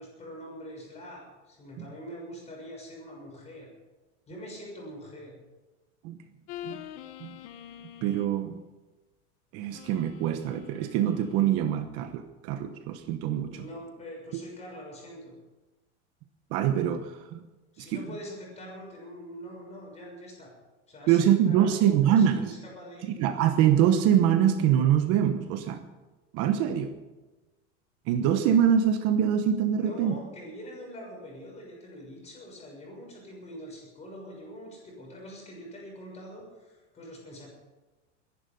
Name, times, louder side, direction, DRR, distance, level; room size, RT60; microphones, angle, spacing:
voice 1, 0.0-3.7 4.3-5.4 13.5-15.4 17.7-20.5 20.9-23.0 29.7-37.5, equal, 20° left, -1 dB, 6.4 m, -44 dB
trumpet game over baby, 6.5-8.4 9.7-11.6, left 12 dB, 55° left, 1.1 m, -45 dB
voice 2, 8.0-8.6 9.5-13.6 14.3-14.4 16.5-17.4 17.8-18.0 21.1-22.5 23.1-25.9 26.3-26.9 28.1-30.1, right 9 dB, 40° right, 8 dB, 1.1 m, -24 dB
22.0 x 11.0 x 5.3 m, 1.1 s
supercardioid pair, 160°, 36 cm